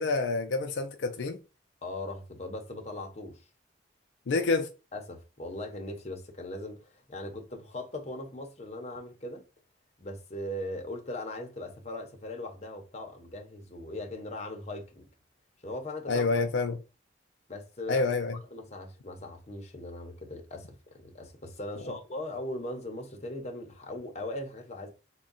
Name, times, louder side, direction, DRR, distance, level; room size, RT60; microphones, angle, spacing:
voice 1, 0.0-1.4 4.3-4.7 16.1-16.8 17.9-18.4, left 3 dB, 80° left, 0.5 m, -27 dB
voice 2, 1.8-3.4 4.9-9.4 10.0-15.0 15.6-16.3 17.5-18.1 18.5-24.9, left 1 dB, 35° left, 0.8 m, -39 dB
3.5 x 2.2 x 3.9 m
head